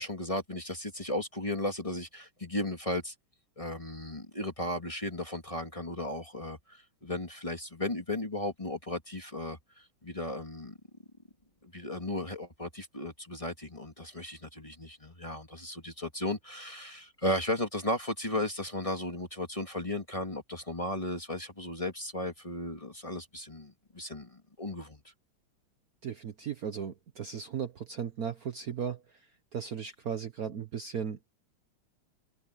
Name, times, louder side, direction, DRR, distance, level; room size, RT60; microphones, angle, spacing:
voice 1, 0.0-3.1 3.6-10.8 11.6-25.0, left 1 dB, 15° left, 1.9 m, -35 dB
voice 2, 26.0-29.0 29.5-31.2, right 7 dB, 55° right, 1.3 m, -36 dB
omnidirectional pair, 2.2 m